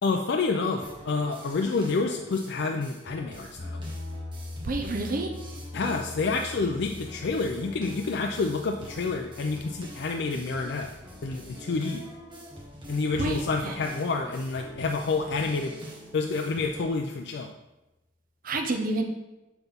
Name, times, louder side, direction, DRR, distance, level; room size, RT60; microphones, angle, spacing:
voice 1, 0.0-3.8 5.7-10.9 11.2-12.1 12.9-15.7 16.1-17.5, left 4 dB, 60° left, 3 dB, 0.4 m, -28 dB
sound 1, 0.8-16.8, right 1 dB, 25° right, 1.4 m, -45 dB
sound 2, 3.6-13.6, left 2 dB, 85° left, 2.1 m, -43 dB
voice 2, 4.6-5.3 13.2-13.8 18.4-19.0, right 2 dB, 45° right, 4 dB, 0.7 m, -29 dB
7.0 x 5.9 x 3.6 m, 1.0 s
head